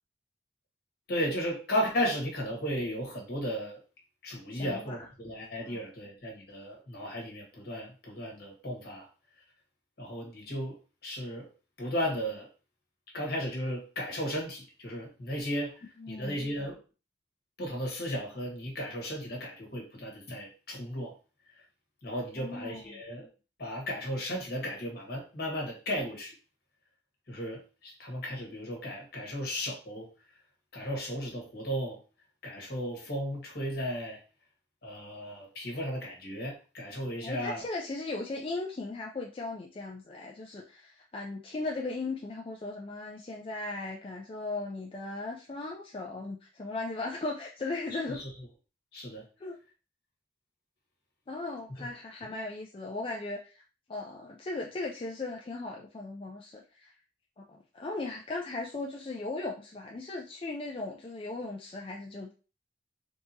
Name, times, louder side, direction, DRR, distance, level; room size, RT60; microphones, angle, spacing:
voice 1, 1.1-3.8 4.2-9.1 10.0-10.8 11.0-11.5 11.8-12.5 13.1-16.8 17.6-21.1 22.0-23.3 23.6-26.3 27.3-30.1 30.7-32.0 32.4-34.2 34.8-37.6 47.9-48.3 48.9-49.2 51.7-51.9, equal, 60° left, 0 dB, 1.3 m, -35 dB
voice 2, 4.5-5.1 5.6-5.8 16.0-16.4 22.4-23.0 37.2-48.2 49.4-49.6 51.3-53.6 53.9-56.9 57.4-62.3, left 2 dB, 30° left, 0 dB, 0.4 m, -37 dB
3.5 x 2.8 x 2.7 m, 0.34 s
head